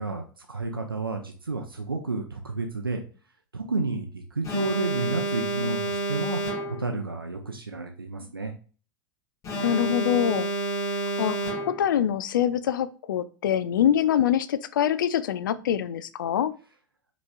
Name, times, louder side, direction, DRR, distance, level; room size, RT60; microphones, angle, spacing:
voice 1, 0.0-3.0 3.5-6.4 6.7-8.5, right 3 dB, 85° right, 3 dB, 0.5 m, -31 dB
Alarm, 4.4-7.0 9.4-12.0, right 2 dB, 30° left, 1.1 m, -29 dB
voice 2, 9.6-10.5 11.2-16.5, left 10 dB, 65° left, 15 dB, 0.4 m, -24 dB
5.3 x 3.1 x 2.2 m, 0.38 s
figure-of-eight pair, 85°, 12 cm